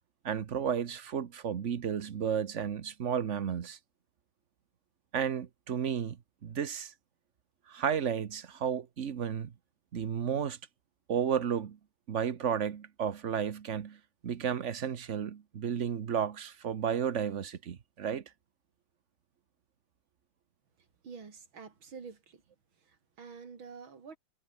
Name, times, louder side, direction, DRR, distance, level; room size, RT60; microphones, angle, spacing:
voice 1, 0.2-3.8 5.1-6.2 6.4-6.9 7.7-9.5 9.9-10.6 11.1-11.8 12.1-14.0 14.2-18.2, right 8 dB, 45° right, 1.0 m, -32 dB
voice 2, 21.0-22.4 22.8-24.2, right 5 dB, 65° right, 3.6 m, -48 dB
omnidirectional pair, 2.4 m